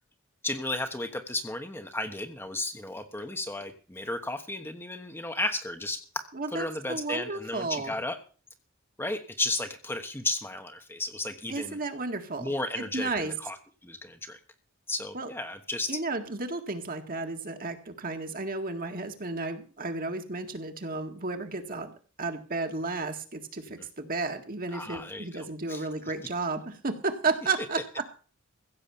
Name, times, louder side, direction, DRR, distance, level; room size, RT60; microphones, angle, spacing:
voice 1, 0.4-6.2 6.5-8.2 9.0-11.8 12.4-13.6 13.8-14.4 14.9-16.0 24.7-25.9, left 2 dB, 10° left, 6 dB, 1.2 m, -34 dB
voice 2, 6.3-7.9 11.5-12.5 12.8-13.3 15.1-15.3 15.9-28.0, right 3 dB, 45° right, 5 dB, 1.8 m, -33 dB
16.0 x 7.1 x 7.0 m, 0.38 s
head